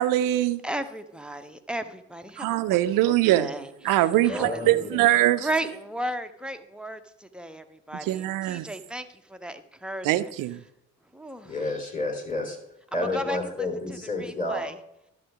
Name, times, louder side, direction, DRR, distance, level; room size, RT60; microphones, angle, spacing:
voice 1, 0.0-0.6 2.4-3.5 3.8-5.5 8.1-8.7 10.0-10.6, right 14 dB, 55° right, 13 dB, 0.5 m, -22 dB
voice 2, 0.6-2.8 3.0-4.9 5.4-10.3 11.1-11.5 13.1-14.8, right 1 dB, ahead, 8 dB, 0.8 m, -35 dB
voice 3, 4.2-5.0 11.4-12.6 12.9-14.6, left 2 dB, 20° left, 2 dB, 3.3 m, -30 dB
11.5 x 7.0 x 3.5 m, 0.85 s
figure-of-eight pair, 45°, 40 cm